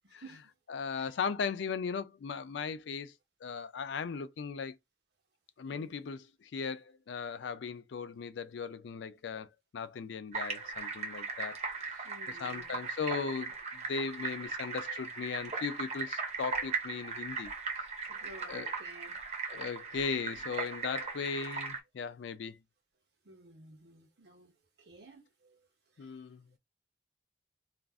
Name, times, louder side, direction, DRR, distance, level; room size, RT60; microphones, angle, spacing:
voice 1, 0.0-0.5 1.0-1.1 5.7-5.9 12.0-12.8 18.1-19.2 19.5-19.6 23.2-24.5 24.8-25.7 26.0-26.1, right 2 dB, 65° right, 0.8 m, -54 dB
voice 2, 0.7-3.1 3.4-4.8 5.6-11.6 12.3-17.5 17.8-17.9 18.5-18.7 19.5-22.6 26.0-26.5, left 5 dB, 80° left, 0.4 m, -37 dB
sound 1, 10.3-21.8, right 4 dB, 35° right, 0.6 m, -38 dB
2.5 x 2.0 x 3.4 m
head